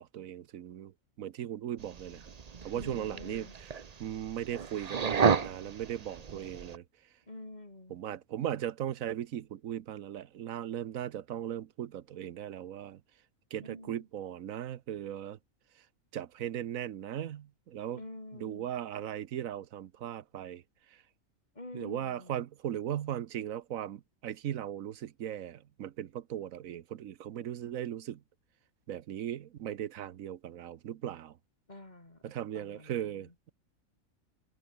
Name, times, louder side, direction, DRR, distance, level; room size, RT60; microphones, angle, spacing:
voice 1, 0.0-2.3 2.6-6.8 7.9-13.0 13.5-15.4 16.1-18.0 18.3-20.6 21.7-28.2 28.9-31.4 32.2-33.5, right 11 dB, 80° right, 1.3 m, -38 dB
sound 1, 1.8-6.8, right 6 dB, 35° right, 0.8 m, -33 dB
voice 2, 2.7-3.5 7.3-8.0 13.6-14.1 17.9-18.7 21.6-22.4 31.7-33.3, left 2 dB, 30° left, 3.7 m, -48 dB
omnidirectional pair, 1.4 m